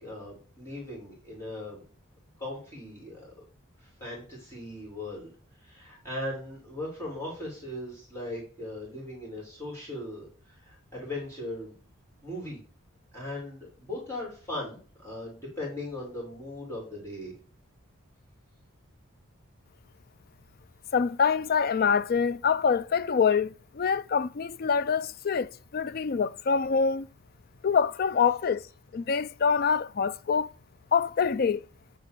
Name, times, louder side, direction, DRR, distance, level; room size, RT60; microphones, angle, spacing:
voice 1, 0.0-1.8 2.4-3.3 3.8-5.3 5.6-11.7 12.2-12.6 13.1-17.3, left 1 dB, 10° left, 3.1 m, -38 dB
voice 2, 20.9-27.1 27.6-28.6 28.9-30.5 30.9-31.6, left 6 dB, 45° left, 0.3 m, -25 dB
9.1 x 3.5 x 6.6 m
head